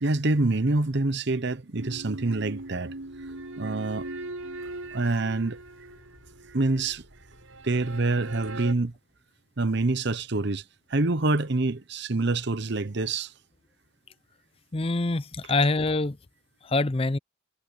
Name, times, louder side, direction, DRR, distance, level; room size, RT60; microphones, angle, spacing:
voice 1, 0.0-2.9 3.6-4.1 4.9-5.6 6.5-7.0 7.6-8.9 9.6-10.6 10.9-13.3, right 2 dB, 55° right, 0.9 m, -26 dB
sound 1, 1.7-8.7, right 2 dB, 80° right, 7.8 m, -40 dB
voice 2, 14.7-16.2 16.7-17.2, left 2 dB, 25° left, 0.5 m, -25 dB
head